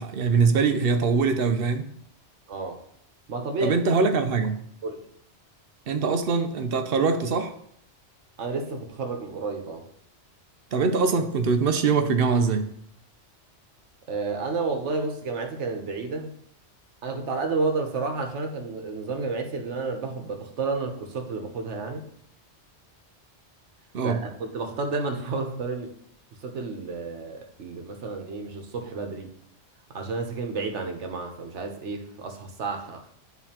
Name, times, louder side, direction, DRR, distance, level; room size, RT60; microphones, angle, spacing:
voice 1, 0.0-1.9 3.6-4.6 5.9-7.5 10.7-12.7 23.9-24.2, right 4 dB, 60° right, 8 dB, 0.8 m, -23 dB
voice 2, 2.5-2.8 3.3-4.0 4.8-5.1 8.4-9.8 14.1-16.3 17.0-22.1 24.0-25.9 26.4-29.3 29.9-33.1, right 3 dB, 85° right, 4 dB, 1.2 m, -31 dB
10.5 x 4.0 x 2.9 m, 0.68 s
omnidirectional pair, 1.2 m